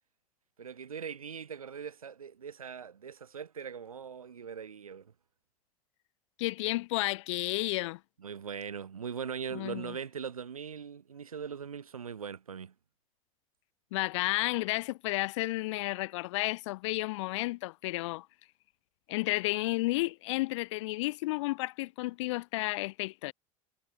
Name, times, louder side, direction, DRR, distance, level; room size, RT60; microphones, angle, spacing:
voice 1, 0.6-5.1 8.2-12.7, right 7 dB, 80° right, 2.8 m, -40 dB
voice 2, 6.4-8.0 9.5-9.9 13.9-18.3 19.1-23.3, left 21 dB, 60° left, 0.4 m, -32 dB
figure-of-eight pair, 75°, 18 cm